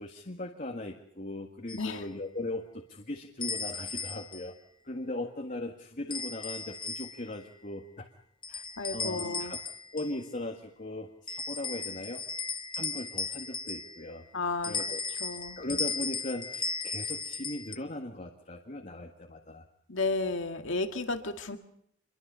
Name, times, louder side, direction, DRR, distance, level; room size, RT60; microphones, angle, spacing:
voice 1, 0.0-4.6 4.8-8.1 8.5-8.6 8.9-9.6 9.9-12.2 12.7-14.2 14.6-15.0 15.6-19.6, left 1 dB, 40° left, 1 dB, 1.8 m, -38 dB
voice 2, 1.7-2.0 8.8-9.6 14.3-14.8 15.2-15.6 19.9-21.6, left 3 dB, 75° left, 6 dB, 2.0 m, -32 dB
sound 1, 1.7-1.9 3.4-4.5 6.1-7.3 8.4-10.2 11.3-14.1 14.6-17.7, left 4 dB, 25° left, 1.0 m, -36 dB
27.0 x 22.5 x 5.6 m, 0.72 s
head